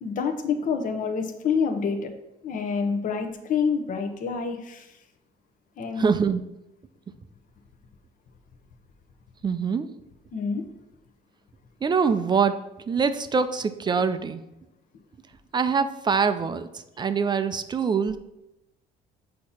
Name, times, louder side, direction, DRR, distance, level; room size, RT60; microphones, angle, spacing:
voice 1, 0.0-2.1 2.4-4.9 5.8-6.1 10.3-10.6, left 5 dB, 50° left, 6 dB, 0.8 m, -27 dB
voice 2, 6.0-6.4 9.4-9.9 11.8-12.5 12.9-14.4 15.5-18.2, right 5 dB, 25° right, 11 dB, 0.4 m, -24 dB
6.3 x 2.8 x 5.6 m, 0.92 s
cardioid pair, 110°, 17 cm